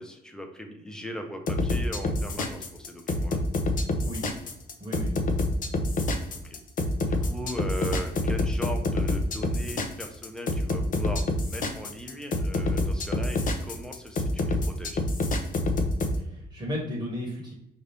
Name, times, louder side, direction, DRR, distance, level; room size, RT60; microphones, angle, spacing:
voice 1, 0.0-3.4 6.3-6.6 7.0-15.0, equal, 5° left, 4 dB, 0.6 m, -39 dB
sound 1, 1.5-16.2, left 2 dB, 50° left, 0.6 m, -27 dB
voice 2, 4.8-5.5 16.2-17.5, left 1 dB, 20° right, -2 dB, 1.1 m, -35 dB
4.8 x 2.7 x 3.3 m, 0.82 s
cardioid pair, 135°, 17 cm